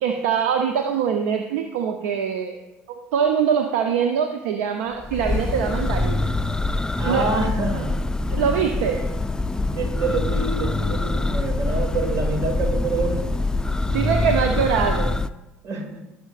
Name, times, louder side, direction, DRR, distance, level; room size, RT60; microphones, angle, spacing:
voice 1, 0.0-2.6 2.9-6.4 7.1-7.3 8.3-9.1 13.9-15.2, right 7 dB, 75° right, 5 dB, 0.7 m, -23 dB
Church bell, 5.0-15.3, left 2 dB, 10° left, 0.4 m, -24 dB
voice 2, 7.0-8.0 9.7-13.3 15.6-16.0, right 3 dB, 55° right, 4 dB, 2.3 m, -27 dB
18.0 x 6.2 x 2.5 m, 0.96 s
hypercardioid pair, 65°, 7 cm